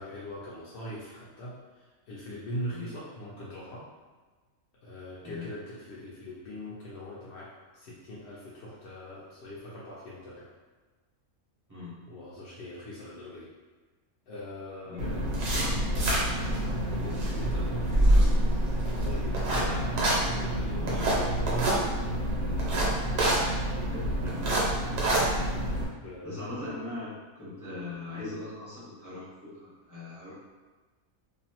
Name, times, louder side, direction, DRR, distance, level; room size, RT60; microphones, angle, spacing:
voice 1, 0.0-3.9 4.8-10.5 12.1-13.5 14.3-15.3 15.9-18.5 18.9-22.1 26.0-26.8, equal, 65° left, -7 dB, 0.6 m, -41 dB
Scratching surface, 15.0-25.8, right 1 dB, 70° right, 1.0 m, -26 dB
voice 2, 23.9-24.6 26.2-30.3, left 2 dB, 20° right, -10 dB, 0.5 m, -40 dB
2.6 x 2.0 x 2.8 m, 1.3 s
omnidirectional pair, 1.5 m